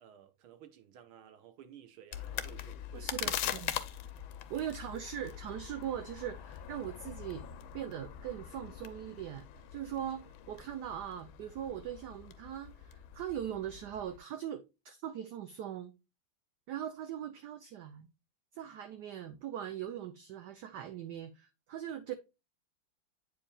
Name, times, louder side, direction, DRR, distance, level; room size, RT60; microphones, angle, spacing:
voice 1, 0.0-3.5 4.5-4.6, right 9 dB, 90° right, 1.8 m, -54 dB
sound 1, 2.1-14.2, left 11 dB, 75° left, 1.4 m, -42 dB
voice 2, 2.9-3.7 4.5-7.5 7.7-9.5 9.7-15.9 16.7-18.1 18.5-22.2, right 10 dB, 70° right, 1.0 m, -40 dB
8.6 x 4.8 x 2.3 m
omnidirectional pair, 2.2 m